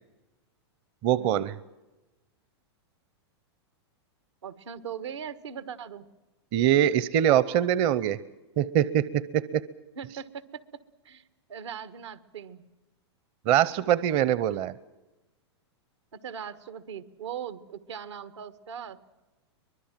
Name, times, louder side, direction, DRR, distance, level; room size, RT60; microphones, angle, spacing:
voice 1, 1.0-1.5 6.5-8.2 8.6-9.6 13.5-14.7, right 11 dB, 40° right, 17 dB, 0.8 m, -23 dB
voice 2, 4.4-6.0 10.0-10.6 11.0-11.2 11.5-12.6 16.2-19.0, right 8 dB, 85° right, 13 dB, 1.6 m, -39 dB
24.0 x 21.5 x 7.5 m, 1.1 s
hypercardioid pair, 130°, 15 cm